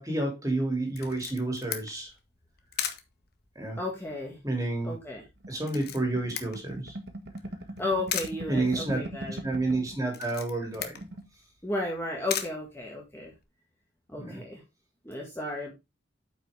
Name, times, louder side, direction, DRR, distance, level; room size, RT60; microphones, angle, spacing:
voice 1, 0.0-2.1 3.5-3.8 4.4-4.9 5.5-7.0 8.5-9.0 9.4-11.0 14.2-14.4, right 2 dB, 15° right, 2 dB, 3.0 m, -30 dB
Camera, 0.9-13.4, left 9 dB, 50° left, 1.2 m, -40 dB
voice 2, 3.8-4.4 4.8-5.2 7.8-9.4 11.6-13.3 14.1-14.6 15.0-15.7, left 2 dB, 10° left, -1 dB, 1.9 m, -33 dB
sound 1, 5.4-10.0 10.3-10.4 10.7-11.3, right 1 dB, 55° right, 1.4 m, -40 dB
9.0 x 5.9 x 3.5 m, 0.23 s
head